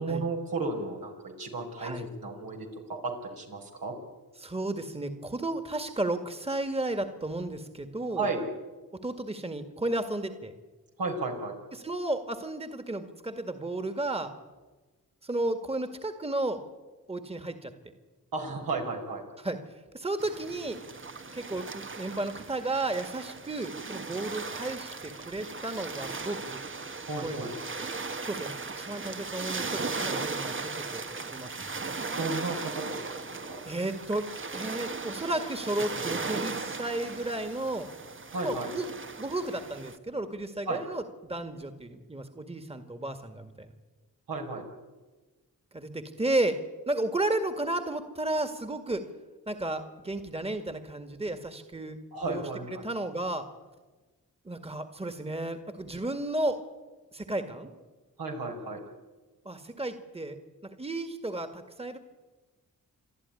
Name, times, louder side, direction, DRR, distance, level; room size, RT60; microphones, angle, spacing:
voice 1, 0.0-3.9 8.2-8.4 11.0-11.6 18.3-19.2 27.1-27.5 32.2-33.6 38.3-38.7 40.7-40.8 44.3-44.7 52.1-52.8 58.2-58.8, right 3 dB, 80° right, 1 dB, 4.9 m, -34 dB
voice 2, 4.4-8.3 8.9-10.5 11.8-14.3 15.2-16.6 17.1-17.7 19.4-19.6 19.9-20.8 21.3-26.6 27.2-27.5 28.2-28.5 28.8-31.0 31.3-31.7 33.6-34.3 34.5-37.9 38.4-38.9 39.2-43.7 45.7-46.6 46.9-49.0 49.5-52.0 52.3-52.4 52.8-53.5 54.4-56.6 57.1-57.7 59.5-62.0, right 2 dB, 15° right, 8 dB, 2.1 m, -33 dB
sound 1, 20.2-40.0, right 4 dB, 35° right, 1.3 m, -37 dB
27.5 x 11.5 x 9.9 m, 1.3 s
cardioid pair, 55°, 35 cm